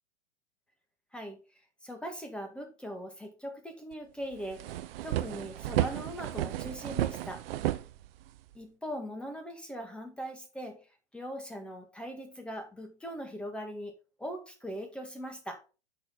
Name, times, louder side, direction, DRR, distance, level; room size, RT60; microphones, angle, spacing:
voice 1, 1.8-7.4 8.5-10.8 11.1-13.9 14.2-15.6, equal, 5° left, 4 dB, 1.9 m, -40 dB
sound 1, 3.9-4.0 4.3-8.5, right 14 dB, 60° right, 0.8 m, -33 dB
8.4 x 6.5 x 4.1 m, 0.32 s
hypercardioid pair, 135°, 34 cm